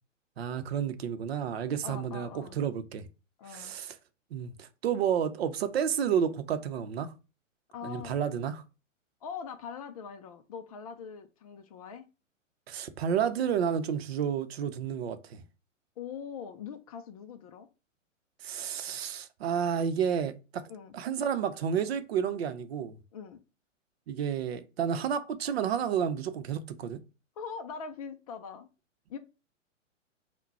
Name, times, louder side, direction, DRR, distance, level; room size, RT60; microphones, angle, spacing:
voice 1, 0.4-3.1 3.5-3.9 4.3-7.1 7.8-8.6 12.7-15.4 18.4-20.7 20.9-23.0 24.1-27.0, right 8 dB, 50° right, 0.7 m, -31 dB
voice 2, 1.8-2.6 3.4-3.7 7.7-8.2 9.2-12.0 16.0-17.7 20.7-21.0 23.1-23.4 27.4-28.7 29.1-29.2, left 6 dB, 30° left, 0.4 m, -42 dB
5.7 x 2.2 x 4.1 m
figure-of-eight pair, 115°, 38 cm